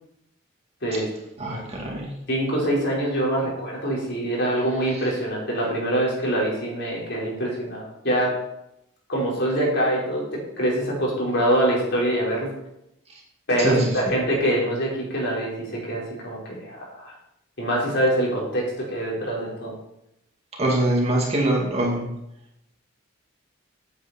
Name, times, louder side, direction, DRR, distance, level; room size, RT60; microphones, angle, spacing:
voice 1, 1.4-2.1 13.6-14.2 20.6-22.1, right 1 dB, 30° right, -2 dB, 2.4 m, -23 dB
voice 2, 2.3-8.3 9.1-12.5 13.5-17.1 17.6-19.7, right 1 dB, 55° left, -3 dB, 4.8 m, -24 dB
14.0 x 8.8 x 4.4 m, 0.82 s
head